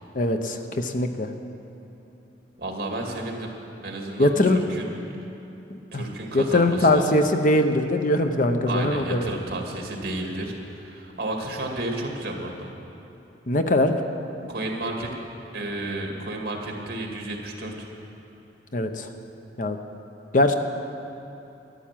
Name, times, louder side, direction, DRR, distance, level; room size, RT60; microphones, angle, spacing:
voice 1, 0.1-1.3 4.2-4.6 5.9-6.0 6.3-9.3 13.5-14.0 14.4-14.5 18.7-19.1 19.6-19.8 20.3-20.5, left 1 dB, 50° left, 7 dB, 0.8 m, -21 dB
voice 2, 2.6-3.5 3.8-4.9 5.9-7.1 8.7-12.7 14.5-15.1 15.5-17.9, right 2 dB, 60° right, 1 dB, 2.1 m, -32 dB
13.0 x 11.5 x 7.4 m, 3.0 s
head